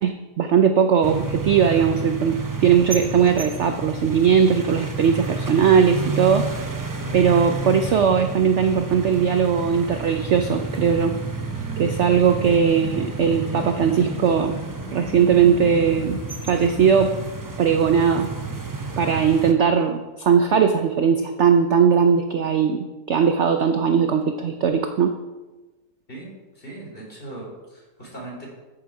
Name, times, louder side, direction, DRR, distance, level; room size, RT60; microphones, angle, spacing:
voice 1, 0.0-6.5 7.1-11.1 11.8-14.6 14.9-16.2 16.5-17.1 17.6-18.3 19.0-25.1, right 7 dB, 60° right, 7 dB, 0.8 m, -19 dB
sound 1, 1.0-19.5, right 4 dB, 30° right, 0.3 m, -30 dB
sound 2, 9.7-17.2, equal, 55° left, 2.2 m, -41 dB
voice 2, 26.1-28.5, right 2 dB, 30° left, -3 dB, 4.1 m, -39 dB
13.5 x 6.9 x 4.8 m, 1.2 s
omnidirectional pair, 1.8 m